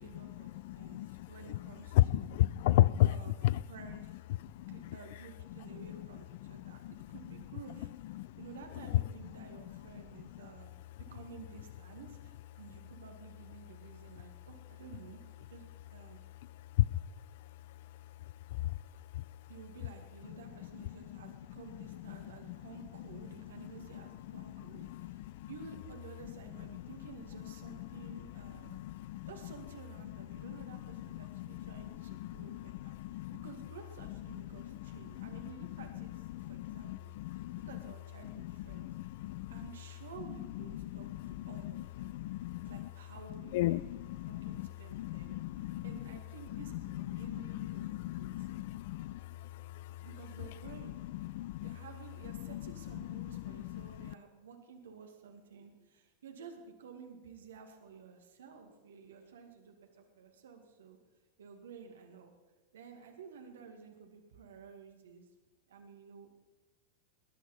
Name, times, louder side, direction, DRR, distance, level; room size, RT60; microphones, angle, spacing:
voice 1, 0.0-0.5 0.7-2.3 3.0-3.3 3.7-4.1 4.7-6.8 7.1-7.9 8.4-10.7 11.1-15.6 15.9-16.2 19.5-28.9 29.3-37.1 37.6-38.9 39.5-42.1 42.6-43.9 44.3-48.5 50.0-51.0 51.6-61.0 61.4-62.3 62.7-65.3 65.7-66.3, right 6 dB, 70° right, 2.1 m, -52 dB
voice 2, 0.6-3.1 3.4-3.6 4.5-4.9 5.7-6.0 6.4-6.9 8.1-8.3 16.8-16.9 18.5-18.7 21.1-21.3 22.1-22.6 23.1-23.2 23.6-24.0 24.3-25.5 26.7-26.9 27.6-29.3 30.0-33.5 34.3-35.7 35.9-36.0 36.3-37.8 38.2-39.7 40.6-42.9 43.5-46.0 46.5-50.0 51.0-51.8 52.4-54.1, left 15 dB, 55° left, 0.4 m, -36 dB
20.5 x 10.0 x 5.5 m
figure-of-eight pair, 90°, 0 cm